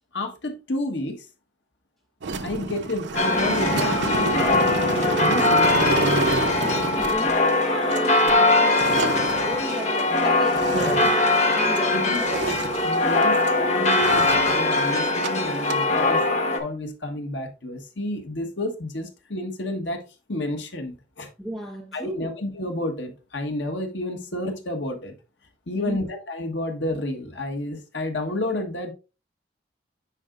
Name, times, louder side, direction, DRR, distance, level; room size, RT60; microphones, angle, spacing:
voice 1, 0.1-1.3 2.4-6.5 10.7-11.0 11.9-12.2 12.8-16.2 16.6-20.0 20.3-21.3 21.9-25.1 25.7-28.9, left 1 dB, 90° left, 1.5 m, -30 dB
sound 1, 2.2-11.9 12.1-13.6 13.9-15.3 15.5-15.8, right 3 dB, 85° right, 0.8 m, -29 dB
sound 2, 3.2-16.6, left 2 dB, 40° left, 1.1 m, -21 dB
voice 2, 7.0-12.5 21.4-22.3 25.7-26.0, right 1 dB, ahead, 1.2 m, -34 dB
9.7 x 4.9 x 2.5 m
head